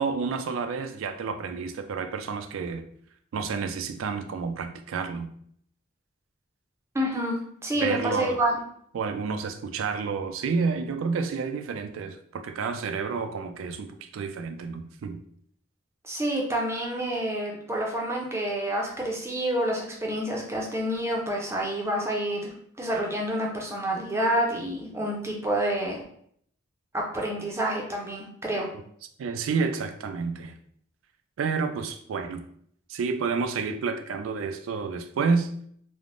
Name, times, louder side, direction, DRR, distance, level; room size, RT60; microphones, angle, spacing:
voice 1, 0.0-2.8 3.3-5.3 7.8-8.4 8.9-15.2 28.7-28.8 29.2-30.5 31.4-32.4 32.9-35.5, right 5 dB, 85° right, 7 dB, 0.3 m, -30 dB
voice 2, 6.9-8.6 16.0-22.5 22.8-26.0 26.9-28.7, right 1 dB, 15° right, -2 dB, 0.5 m, -28 dB
3.2 x 2.0 x 2.5 m, 0.64 s
head